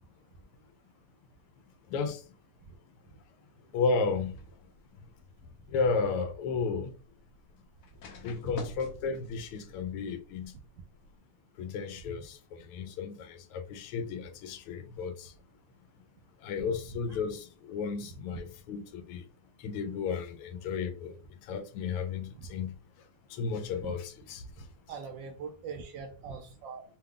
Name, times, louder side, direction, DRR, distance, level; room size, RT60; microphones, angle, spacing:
voice 1, 1.9-2.2 3.7-4.4 5.7-6.9 8.2-10.5 11.6-15.3 16.4-19.3 19.6-22.7 23.3-24.7, left 5 dB, 80° left, 1.5 m, -33 dB
sound 1, 4.0-11.2, left 3 dB, 60° left, 1.1 m, -52 dB
voice 2, 24.9-26.8, right 5 dB, 70° right, 1.2 m, -42 dB
5.1 x 2.3 x 3.6 m
omnidirectional pair, 2.4 m